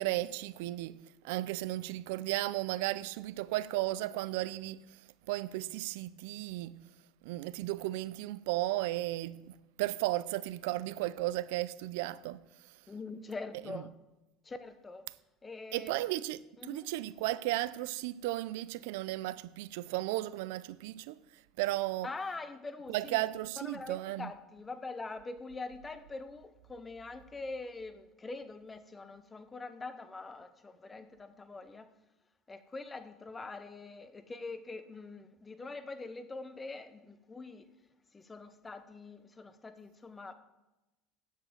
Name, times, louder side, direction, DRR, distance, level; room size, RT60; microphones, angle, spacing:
voice 1, 0.0-4.8 5.3-6.8 7.2-12.4 13.7-13.8 15.7-21.2 21.6-22.1 22.9-24.3, right 17 dB, 85° right, 0.5 m, -35 dB
voice 2, 12.9-13.9 14.5-15.0 15.4-15.9 16.6-16.9 22.0-23.2 23.6-31.9 32.5-37.7 38.1-40.3, left 3 dB, 15° left, 0.9 m, -44 dB
9.2 x 7.5 x 7.9 m
cardioid pair, 145°, 0 cm